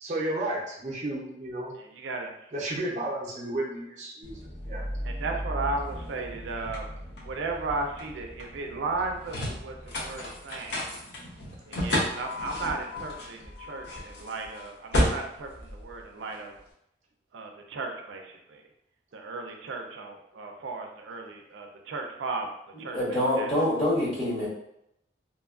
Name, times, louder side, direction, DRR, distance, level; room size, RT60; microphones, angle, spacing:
voice 1, 0.0-1.7 2.5-4.4 4.7-4.8, right 1 dB, 40° right, -4 dB, 0.5 m, -32 dB
voice 2, 1.8-2.5 5.0-6.9 7.2-10.8 11.7-16.6 17.3-18.6 19.1-22.5 22.8-23.5, right 3 dB, 90° right, 3 dB, 0.4 m, -35 dB
sound 1, 4.2-16.6, left 1 dB, 65° left, 0.7 m, -33 dB
voice 3, 22.9-24.5, left 1 dB, 30° left, -8 dB, 1.0 m, -25 dB
2.8 x 2.3 x 2.3 m, 0.78 s
head